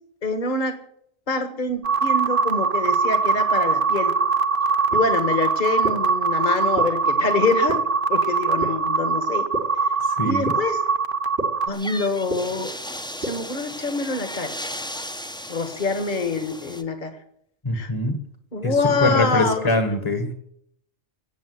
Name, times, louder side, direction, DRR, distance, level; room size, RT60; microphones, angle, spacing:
voice 1, 0.2-0.8 1.3-4.2 4.9-7.8 8.1-9.5 10.2-10.8 11.7-12.8 13.2-14.6 15.5-17.2 17.7-17.9 18.5-19.7, left 3 dB, 45° left, 8 dB, 1.7 m, -25 dB
sound 1, 1.8-11.7, right 5 dB, 50° right, 1.2 m, -22 dB
sound 2, 4.9-5.0 5.8-5.9 6.8-6.9 7.7-7.8 8.6-8.7 9.5-9.6 10.5-10.6 11.4-11.5 12.3-12.4 13.2-13.3, right 1 dB, 75° right, 3.2 m, -27 dB
voice 2, 10.0-10.5 17.6-18.2 18.6-20.3, left 2 dB, 25° left, 7 dB, 1.4 m, -23 dB
sound 3, 11.7-16.8, left 1 dB, 5° left, 0.9 m, -35 dB
17.0 x 7.1 x 9.5 m, 0.70 s
omnidirectional pair, 1.2 m